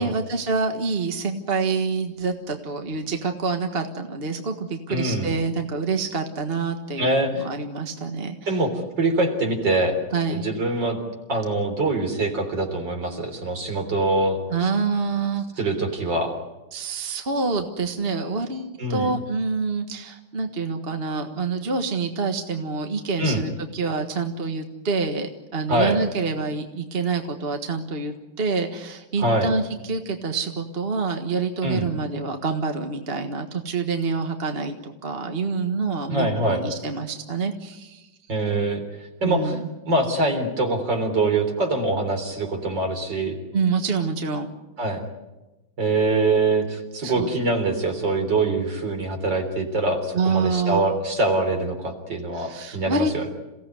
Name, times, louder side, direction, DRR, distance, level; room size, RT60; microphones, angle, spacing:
voice 1, 0.0-8.5 10.1-10.4 14.5-15.4 16.7-38.0 39.2-39.7 43.5-44.5 47.0-47.3 50.1-50.8 52.3-53.1, right 4 dB, 30° right, 5 dB, 1.6 m, -27 dB
voice 2, 4.9-5.3 7.0-7.5 8.5-8.7 9.0-10.0 10.3-11.0 11.3-14.7 15.6-16.3 18.8-19.1 23.2-23.4 25.7-26.0 29.2-29.5 31.6-31.9 36.1-36.6 38.3-38.8 39.2-39.6 39.9-43.4 44.8-45.0 45.8-53.2, right 2 dB, 65° right, 4 dB, 4.4 m, -24 dB
28.5 x 17.0 x 9.5 m, 1.1 s
omnidirectional pair, 2.1 m